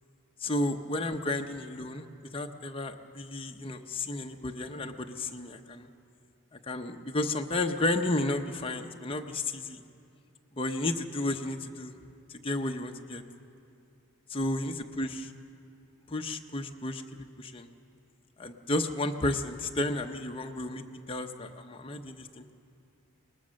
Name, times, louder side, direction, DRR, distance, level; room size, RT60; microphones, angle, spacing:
voice 1, 0.4-2.1 2.3-5.9 6.5-9.8 10.5-11.9 12.4-13.2 14.3-15.3 16.1-17.7 18.4-22.5, left 2 dB, 25° left, 4 dB, 0.8 m, -32 dB
22.0 x 19.5 x 6.4 m, 2.6 s
head